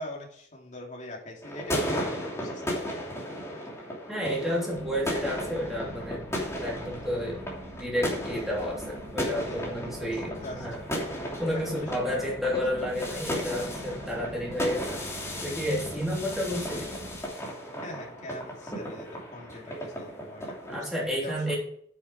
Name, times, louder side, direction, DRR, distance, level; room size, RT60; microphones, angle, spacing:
voice 1, 0.0-2.8 9.5-10.7 11.4-12.9 17.8-21.6, left 1 dB, 45° left, -1 dB, 2.9 m, -42 dB
sound 1, 1.4-20.9, equal, 15° left, 2.9 m, -35 dB
voice 2, 4.1-6.2 6.6-7.4 7.8-10.8 11.4-15.0 15.4-16.9 20.7-21.6, equal, ahead, -5 dB, 3.3 m, -31 dB
sound 2, 4.7-17.3, equal, 50° right, 1.7 m, -44 dB
9.5 x 7.3 x 4.9 m, 0.64 s
head